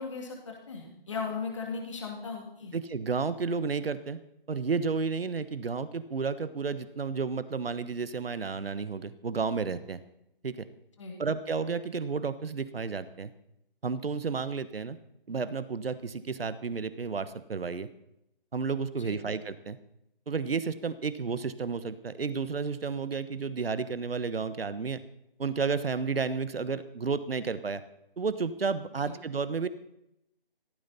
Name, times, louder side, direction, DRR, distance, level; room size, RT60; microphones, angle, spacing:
voice 1, 0.0-2.7 11.0-11.2 19.0-19.2 29.0-29.1, left 5 dB, 30° left, 1 dB, 2.5 m, -37 dB
voice 2, 2.7-4.2 4.5-10.0 10.4-10.7 11.2-13.3 13.8-15.0 15.3-17.9 18.5-19.8 20.3-25.0 25.4-27.8 28.2-29.7, right 5 dB, 80° right, 14 dB, 1.2 m, -32 dB
15.5 x 15.0 x 4.2 m, 0.83 s
hypercardioid pair, 175°, 29 cm